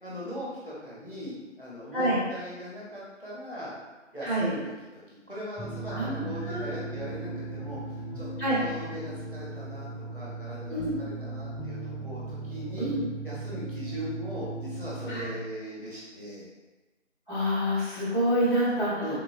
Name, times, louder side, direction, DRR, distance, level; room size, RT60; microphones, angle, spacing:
voice 1, 0.0-3.7 4.1-8.3 8.5-12.9 13.2-16.5 19.0-19.2, equal, 45° left, -7 dB, 0.8 m, -40 dB
sound 1, 5.6-15.3, right 2 dB, ahead, 0.4 m, -37 dB
voice 2, 5.9-6.8 8.4-8.6 10.7-11.0 12.8-13.1 15.1-15.3 17.3-19.2, equal, 40° right, -9 dB, 1.0 m, -27 dB
3.6 x 2.2 x 2.4 m, 1.2 s
figure-of-eight pair, 180°, 38 cm